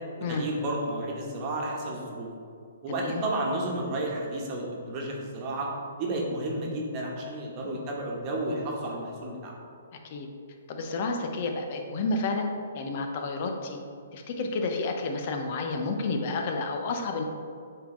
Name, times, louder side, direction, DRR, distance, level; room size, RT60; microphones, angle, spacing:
voice 1, 0.3-2.3 2.8-5.7 6.0-9.5, right 1 dB, 35° right, -2 dB, 1.3 m, -32 dB
voice 2, 2.9-3.2 10.0-10.3 10.7-13.8 14.1-17.2, left 3 dB, 45° left, 3 dB, 0.9 m, -30 dB
8.3 x 3.8 x 3.9 m, 2.4 s
hypercardioid pair, 130°, 0 cm